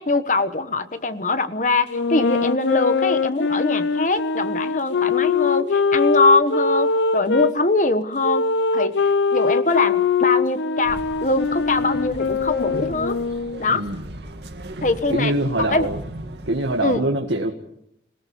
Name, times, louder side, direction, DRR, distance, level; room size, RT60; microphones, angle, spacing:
voice 1, 0.0-8.4 8.7-13.2 13.6-13.8 14.8-15.3 15.6-15.9 16.8-17.0, left 3 dB, 40° left, 10 dB, 1.3 m, -22 dB
sound 1, 1.9-7.5 8.2-13.7, left 4 dB, 80° left, 0.8 m, -22 dB
sound 2, 10.9-17.0, right 1 dB, 65° right, 1.9 m, -37 dB
voice 2, 13.7-14.0 15.1-16.0 16.5-17.5, right 1 dB, 85° right, 3 dB, 1.7 m, -23 dB
25.5 x 18.0 x 7.0 m, 0.78 s
head